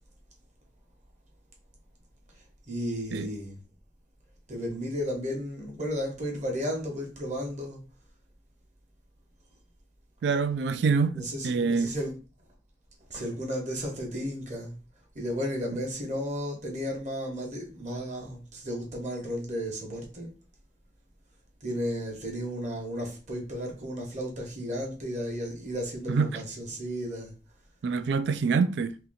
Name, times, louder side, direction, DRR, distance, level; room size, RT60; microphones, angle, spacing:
voice 1, 2.7-3.6 4.5-7.8 11.1-12.2 13.1-14.8 15.1-20.3 21.6-27.3, equal, 40° right, 1.0 m, -33 dB
voice 2, 10.2-11.2 11.4-11.9 26.1-26.4 27.8-28.9, right 5 dB, 65° right, 0.3 m, -25 dB
2.8 x 2.8 x 4.0 m
head